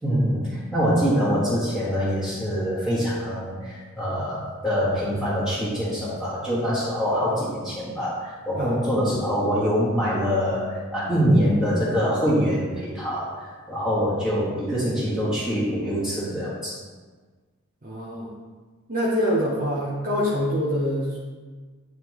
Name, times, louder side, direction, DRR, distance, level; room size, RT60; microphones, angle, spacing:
voice 1, 0.0-13.3 13.7-16.8, equal, 5° right, -11 dB, 1.5 m, -24 dB
voice 2, 17.8-18.3 18.9-21.2, equal, 40° right, -6 dB, 0.9 m, -25 dB
9.1 x 3.4 x 3.1 m, 1.4 s
head